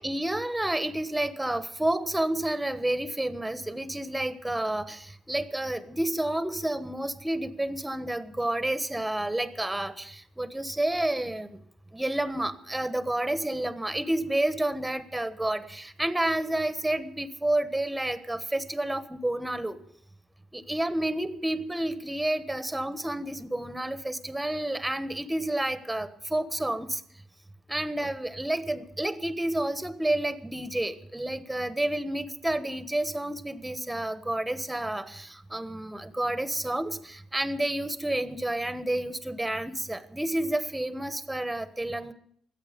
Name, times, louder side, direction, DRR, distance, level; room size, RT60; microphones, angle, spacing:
voice 1, 0.0-11.6 11.9-19.8 20.5-27.0 27.7-42.1, right 1 dB, 10° right, 11 dB, 1.2 m, -30 dB
23.5 x 8.4 x 5.2 m, 0.64 s
cardioid pair, 90°, 0 cm